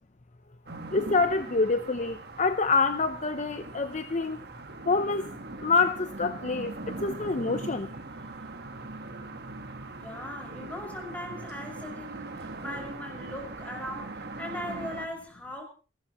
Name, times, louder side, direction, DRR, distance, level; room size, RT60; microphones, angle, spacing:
sound 1, 0.7-15.1, right 2 dB, 60° right, 1.5 m, -41 dB
voice 1, 0.9-4.4 4.9-5.3 5.6-7.9, left 3 dB, 40° left, 0.7 m, -26 dB
voice 2, 9.9-15.6, left 1 dB, 10° left, 6.0 m, -39 dB
29.0 x 13.0 x 3.1 m
head